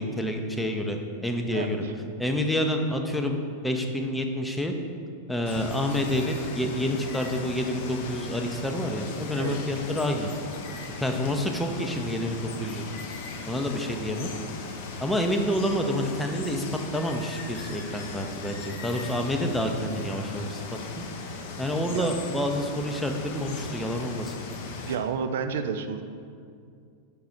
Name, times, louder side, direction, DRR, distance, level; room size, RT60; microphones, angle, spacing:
voice 1, 0.0-1.8 2.2-3.4 3.6-4.8 5.3-10.3 11.0-12.9 13.4-14.3 15.0-16.6 16.9-20.6 21.0-21.1 21.6-24.3, equal, 5° left, 3 dB, 0.6 m, -28 dB
voice 2, 1.5-1.9 8.4-8.6 9.4-9.6 21.8-22.1 24.9-26.0, right 6 dB, 60° right, 7 dB, 0.3 m, -31 dB
Water, 5.5-25.0, left 4 dB, 50° left, 0.6 m, -38 dB
5.8 x 3.7 x 5.5 m, 2.3 s
figure-of-eight pair, 90°, 0 cm